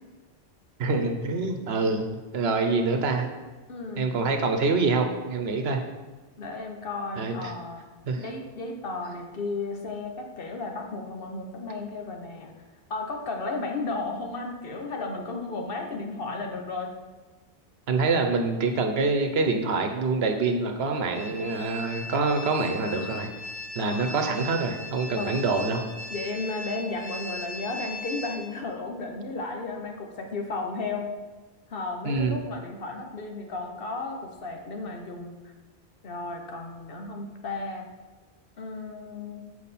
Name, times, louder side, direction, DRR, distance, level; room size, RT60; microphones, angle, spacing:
voice 1, 0.8-2.0 2.3-3.3 4.0-5.8 7.2-7.5 8.1-8.2 17.9-23.3 23.7-25.8 32.0-32.4, right 3 dB, 70° right, 5 dB, 1.0 m, -25 dB
voice 2, 3.7-4.3 6.4-7.8 8.2-12.5 12.9-16.9 23.8-24.1 25.2-25.4 26.1-31.1 31.7-35.5 36.0-37.9 38.6-39.5, left 3 dB, 60° left, 3 dB, 1.0 m, -34 dB
sound 1, 21.1-28.4, left 2 dB, 75° left, 1.8 m, -38 dB
7.2 x 4.7 x 4.2 m, 1.2 s
omnidirectional pair, 1.1 m